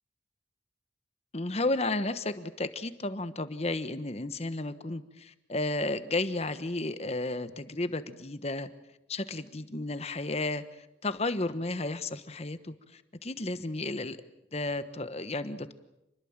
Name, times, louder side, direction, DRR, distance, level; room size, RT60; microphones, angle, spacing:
voice 1, 1.3-8.7 9.1-10.6 11.0-14.2 14.5-15.7, left 2 dB, 35° left, 12 dB, 1.2 m, -33 dB
27.5 x 21.0 x 7.4 m, 0.89 s
head